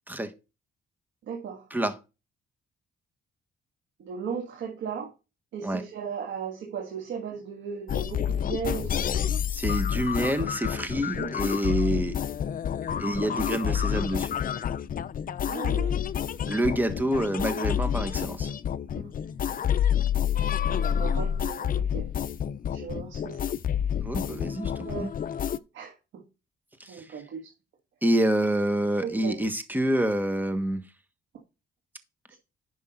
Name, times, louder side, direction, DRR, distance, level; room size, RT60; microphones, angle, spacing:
voice 1, 1.3-1.6 4.0-5.1 5.5-9.1 11.2-11.3 13.1-13.3 15.4-16.0 18.9-19.1 20.7-22.1 22.7-23.4 24.8-25.1 25.7-26.2 26.9-27.5 29.0-29.3 32.3-32.4, right 7 dB, 75° right, 1.6 m, -36 dB
sound 1, 7.9-25.6, left 9 dB, 45° left, 0.6 m, -28 dB
voice 2, 9.5-12.2 13.0-14.4 16.5-18.5 24.0-25.1 26.8-27.2 28.0-30.8, right 1 dB, 10° right, 1.4 m, -27 dB
10.5 x 5.5 x 3.8 m
cardioid pair, 90°, 20 cm